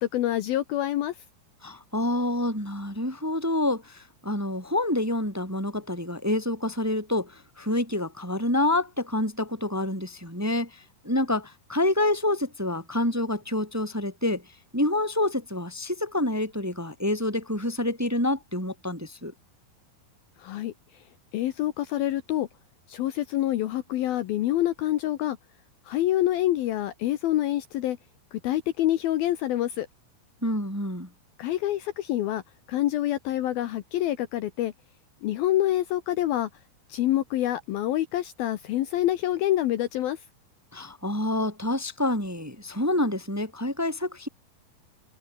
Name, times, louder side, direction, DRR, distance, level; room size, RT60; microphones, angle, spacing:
voice 1, 0.0-1.2 20.4-21.0 21.3-22.5 22.9-25.4 25.9-28.0 28.3-29.9 31.4-32.4 32.7-34.7 35.2-36.5 36.9-40.2, left 13 dB, 70° left, 2.6 m, -26 dB
voice 2, 1.6-14.4 14.7-19.3 30.4-31.1 40.7-44.3, left 1 dB, 5° right, 2.5 m, -27 dB
omnidirectional pair, 5.0 m